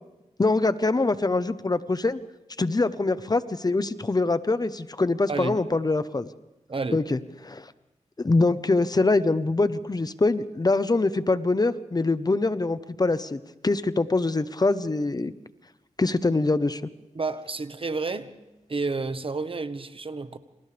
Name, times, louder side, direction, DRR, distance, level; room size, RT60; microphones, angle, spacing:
voice 1, 0.4-2.2 2.6-6.3 6.9-7.7 8.2-15.3 16.0-16.8, left 3 dB, 30° left, 0.9 m, -24 dB
voice 2, 5.3-5.6 6.7-7.0 17.1-18.3 18.7-20.4, right 3 dB, 45° right, 1.3 m, -30 dB
28.5 x 27.0 x 3.4 m
wide cardioid pair, 85°, 13 cm